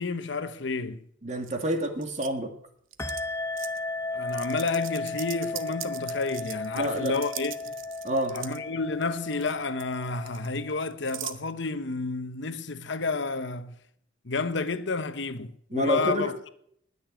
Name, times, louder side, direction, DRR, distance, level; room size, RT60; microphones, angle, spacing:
voice 1, 0.0-1.0 4.1-7.8 8.3-13.7 14.2-16.5, left 3 dB, 65° left, 1.0 m, -30 dB
voice 2, 1.2-2.5 6.8-7.2 8.0-8.4 15.7-16.3, equal, 35° right, 2.2 m, -28 dB
sound 1, 1.4-2.3 2.9-3.2 3.6-3.8 4.3-8.6 9.0-9.5 9.8-11.4, right 12 dB, 80° right, 1.0 m, -40 dB
sound 2, 3.0-11.1, left 3 dB, 15° left, 0.7 m, -35 dB
19.5 x 6.8 x 8.9 m
head